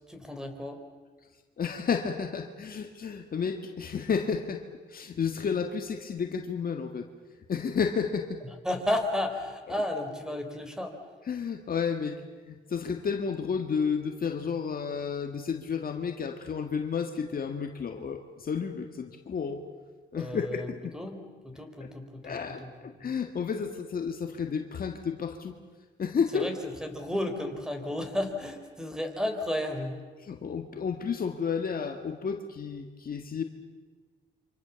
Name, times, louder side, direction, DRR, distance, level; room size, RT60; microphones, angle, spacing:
voice 1, 0.1-0.8 8.6-10.9 20.2-20.7 20.9-21.2 21.4-22.4 22.6-22.7 23.0-23.1 26.3-26.5 26.8-30.0, left 1 dB, 5° right, 6 dB, 4.4 m, -32 dB
voice 2, 1.6-4.6 4.9-7.1 7.5-8.4 9.7-9.8 11.2-12.2 12.5-19.7 20.1-21.0 21.8-21.9 22.2-25.6 26.0-26.5 30.2-33.4, left 6 dB, 45° left, 5 dB, 1.8 m, -31 dB
28.0 x 25.5 x 7.1 m, 1.5 s
cardioid pair, 90°, 20 cm